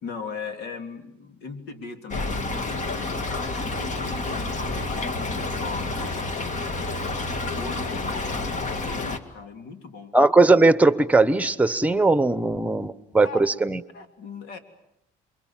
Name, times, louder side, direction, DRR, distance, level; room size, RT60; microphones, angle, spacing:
voice 1, 0.0-6.1 7.0-10.2 13.2-13.5 13.9-14.6, left 5 dB, 80° left, 6 dB, 3.3 m, -39 dB
Stream / Trickle dribble, 2.1-9.2, left 2 dB, 45° left, 2.3 m, -29 dB
voice 2, 10.1-13.8, right 3 dB, 10° right, 14 dB, 1.1 m, -19 dB
28.0 x 23.0 x 7.5 m, 0.83 s
cardioid pair, 110°, 17 cm